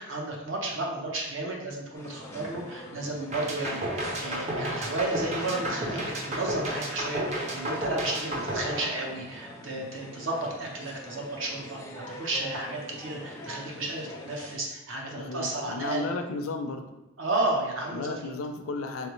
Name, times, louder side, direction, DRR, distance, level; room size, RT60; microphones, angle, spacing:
voice 1, 0.0-16.1 17.2-18.2, right 2 dB, 65° right, -1 dB, 0.8 m, -33 dB
sound 1, 1.9-14.6, left 1 dB, 15° left, 0.4 m, -44 dB
sound 2, 3.3-9.5, right 1 dB, 35° right, 0.6 m, -32 dB
voice 2, 15.1-16.9 17.9-19.1, left 3 dB, 85° left, 6 dB, 0.4 m, -34 dB
3.5 x 3.2 x 3.1 m, 1.0 s
head